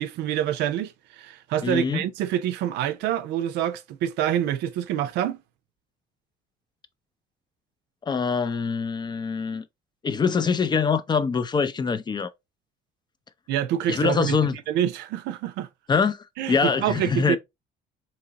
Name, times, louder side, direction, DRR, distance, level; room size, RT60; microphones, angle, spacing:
voice 1, 0.0-5.4 13.5-15.7 16.4-17.4, right 11 dB, 85° right, 0.5 m, -26 dB
voice 2, 1.6-2.0 8.0-9.6 10.0-12.3 13.9-14.6 15.9-17.4, left 5 dB, 25° left, 0.4 m, -24 dB
3.8 x 2.9 x 2.8 m
cardioid pair, 110°, 17 cm